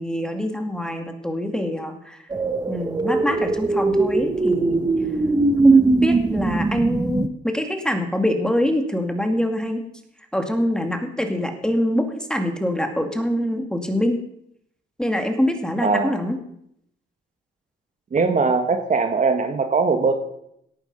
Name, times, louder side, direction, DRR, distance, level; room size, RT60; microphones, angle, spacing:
voice 1, 0.0-2.2 2.7-4.9 5.6-9.8 10.3-14.2 15.0-16.4, left 1 dB, 5° left, 5 dB, 2.3 m, -24 dB
sound 1, 2.3-7.3, right 3 dB, 20° right, 1.0 m, -20 dB
voice 2, 15.8-16.1 18.1-20.1, right 4 dB, 40° right, 7 dB, 1.7 m, -20 dB
17.5 x 9.0 x 5.4 m, 0.74 s
cardioid pair, 90°, 20 cm